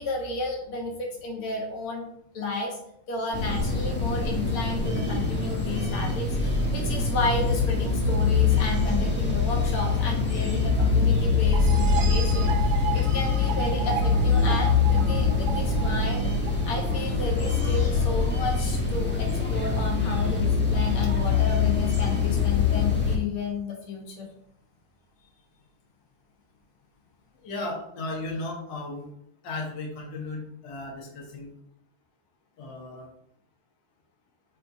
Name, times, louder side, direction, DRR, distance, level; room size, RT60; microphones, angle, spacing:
voice 1, 0.0-2.1 2.3-2.8 3.1-16.3 16.7-24.3, left 3 dB, 80° left, 0 dB, 2.2 m, -32 dB
sound 1, 3.3-23.2, left 4 dB, 5° left, 0.9 m, -24 dB
sound 2, 11.5-17.0, right 9 dB, 75° right, 1.7 m, -34 dB
voice 2, 27.4-29.1 29.4-31.5 32.6-33.1, left 2 dB, 60° left, -1 dB, 2.0 m, -35 dB
7.0 x 3.4 x 4.6 m, 0.72 s
omnidirectional pair, 2.3 m